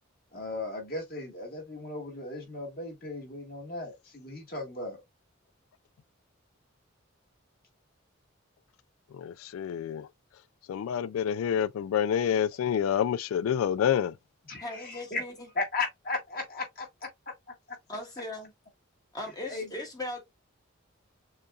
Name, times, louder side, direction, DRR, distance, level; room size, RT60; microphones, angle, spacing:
voice 1, 0.3-5.0 14.4-15.2 15.5-17.3 19.2-19.8, left 3 dB, 45° left, 1.8 m, -36 dB
voice 2, 9.1-10.1 10.7-14.1, left 8 dB, 85° left, 0.3 m, -28 dB
voice 3, 14.6-15.5 17.9-18.5 19.1-20.2, left 1 dB, 20° left, 1.0 m, -38 dB
6.6 x 2.4 x 2.4 m
head